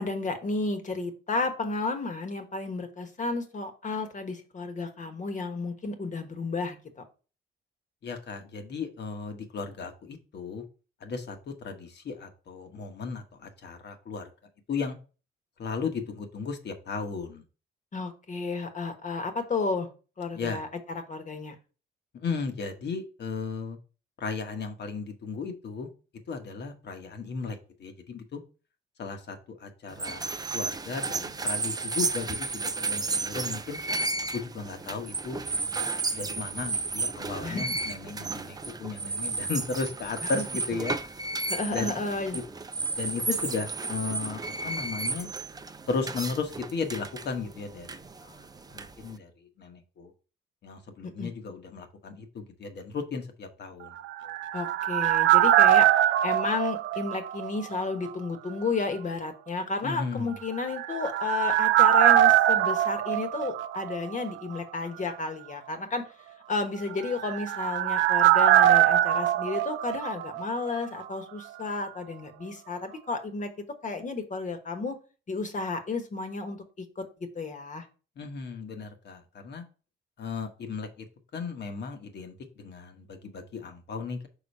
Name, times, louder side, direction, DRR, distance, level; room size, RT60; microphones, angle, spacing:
voice 1, 0.0-6.8 17.9-19.9 20.2-21.5 37.4-37.7 40.2-40.4 41.5-42.4 51.0-51.3 54.5-66.1 66.5-75.0 75.3-77.0 77.3-77.9, left 3 dB, 40° left, 6 dB, 1.3 m, -32 dB
voice 2, 8.0-10.6 11.0-14.3 14.7-15.0 15.6-17.4 20.3-20.6 22.1-23.8 24.2-25.9 26.3-28.4 29.0-33.8 34.3-35.8 36.1-41.0 41.7-42.0 42.3-42.4 43.0-45.3 45.9-48.4 48.7-49.3 49.6-50.1 50.6-53.9 54.2-54.3 59.8-60.3 78.2-79.6 80.2-81.1 81.3-84.3, left 4 dB, 60° left, 6 dB, 1.2 m, -35 dB
sound 1, 29.9-49.2, right 3 dB, 20° right, 0.5 m, -33 dB
sound 2, 54.0-57.8 58.1-58.2 60.6-64.3 64.5-64.6 66.9-70.8 71.0-71.1, right 13 dB, 75° right, 0.4 m, -22 dB
5.0 x 3.8 x 5.4 m, 0.36 s
cardioid pair, 90°, 20 cm